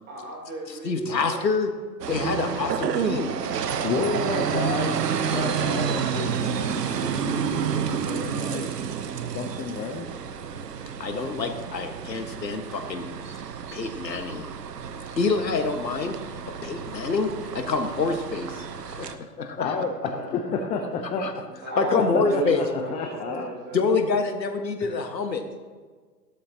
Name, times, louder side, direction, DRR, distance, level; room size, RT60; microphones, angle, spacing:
voice 1, 0.1-1.5 21.4-24.1, right 2 dB, 20° right, -1 dB, 3.5 m, -35 dB
voice 2, 0.8-1.7 2.1-3.3 11.0-13.4 13.7-14.5 15.2-16.2 16.5-19.8 21.2-21.3 21.8-22.6 23.7-25.4, left 4 dB, 85° left, 6 dB, 1.7 m, -27 dB
sound 1, 2.0-19.2, right 7 dB, 70° right, 1.1 m, -30 dB
voice 3, 3.8-8.7 9.3-10.0 19.6-21.3 21.9-22.6 22.9-23.5 24.8-25.0, left 4 dB, 15° left, 3 dB, 0.6 m, -31 dB
17.0 x 12.5 x 2.9 m, 1.5 s
hypercardioid pair, 125°, 49 cm